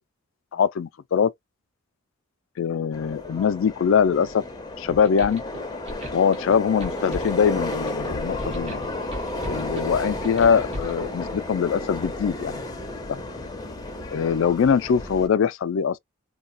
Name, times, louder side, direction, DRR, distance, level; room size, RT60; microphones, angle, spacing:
voice 1, 0.5-1.3 2.6-4.4 4.8-5.4 6.1-8.8 9.5-12.6 13.1-13.2 14.1-16.0, left 7 dB, 70° left, 0.3 m, -22 dB
Subway metro underground, 2.9-15.3, left 2 dB, 20° left, 0.6 m, -32 dB
sound 1, 4.9-11.0, equal, 30° right, 0.9 m, -37 dB
2.3 x 2.1 x 3.8 m
head